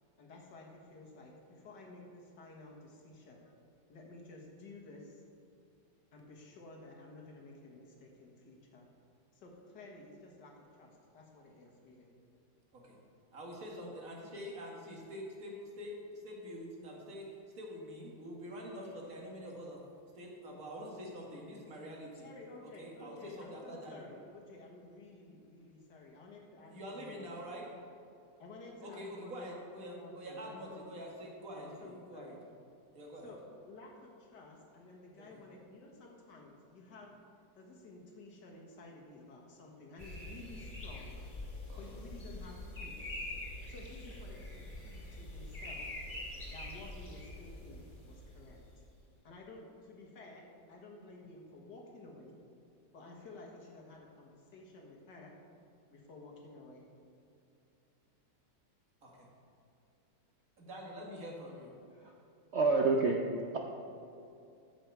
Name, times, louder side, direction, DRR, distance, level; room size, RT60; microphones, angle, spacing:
voice 1, 0.2-3.6 3.9-5.2 6.1-8.8 9.3-12.1 22.1-27.5 28.4-30.9 31.5-32.4 33.2-37.2 37.5-41.2 41.8-43.1 43.7-45.9 46.5-48.6 49.2-52.4 52.9-55.3 55.9-56.9, left 2 dB, 60° left, 0 dB, 2.1 m, -53 dB
voice 2, 13.3-15.9 16.2-17.3 17.6-19.8 20.2-22.3 22.8-24.0 26.7-27.7 28.8-32.3 32.9-33.3 35.2-35.4 41.7-42.0 44.3-44.4 59.0-59.3 60.6-61.7, equal, 45° right, -2 dB, 2.1 m, -46 dB
sound 1, 40.0-48.8, left 1 dB, 25° left, 2.3 m, -45 dB
voice 3, 62.5-63.2, right 3 dB, 65° right, 1 dB, 0.6 m, -27 dB
14.0 x 6.2 x 4.7 m, 2.6 s
omnidirectional pair, 2.1 m